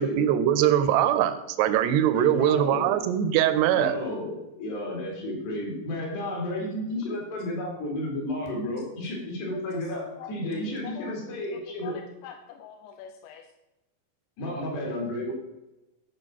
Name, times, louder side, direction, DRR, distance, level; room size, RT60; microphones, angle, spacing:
voice 1, 0.0-4.0, right 10 dB, 80° right, 10 dB, 2.6 m, -22 dB
voice 2, 2.1-3.0 3.7-12.0 14.4-15.3, left 1 dB, 65° left, -1 dB, 4.7 m, -32 dB
voice 3, 11.8-13.4, left 8 dB, 85° left, 6 dB, 2.9 m, -44 dB
12.5 x 4.6 x 6.1 m, 0.98 s
omnidirectional pair, 5.2 m